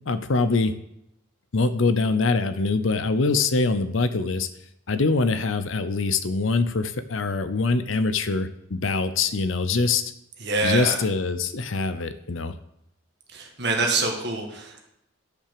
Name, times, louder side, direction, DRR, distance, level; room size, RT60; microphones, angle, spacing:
voice 1, 0.1-0.7 1.5-4.5 4.9-10.1 10.6-12.6, left 3 dB, 70° left, 12 dB, 0.7 m, -24 dB
voice 2, 10.4-11.0 13.3-14.8, right 3 dB, 50° right, 2 dB, 2.0 m, -25 dB
10.5 x 5.8 x 6.8 m, 0.79 s
head